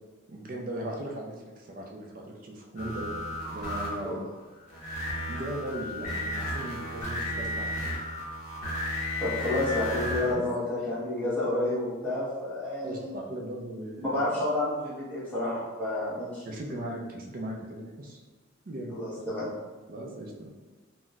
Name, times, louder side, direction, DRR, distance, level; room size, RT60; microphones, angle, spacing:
voice 1, 0.3-3.2 3.5-4.2 5.1-7.9 10.2-10.5 12.8-14.2 16.4-18.2 18.7-19.0 19.9-20.5, right 1 dB, 45° right, 0 dB, 0.4 m, -38 dB
sound 1, 2.8-4.1 4.7-10.3, left 1 dB, 35° left, 1.0 m, -33 dB
voice 2, 9.2-13.1 14.0-16.4 18.9-19.5, left 1 dB, 10° left, -9 dB, 1.0 m, -30 dB
4.0 x 2.0 x 2.3 m, 1.3 s
head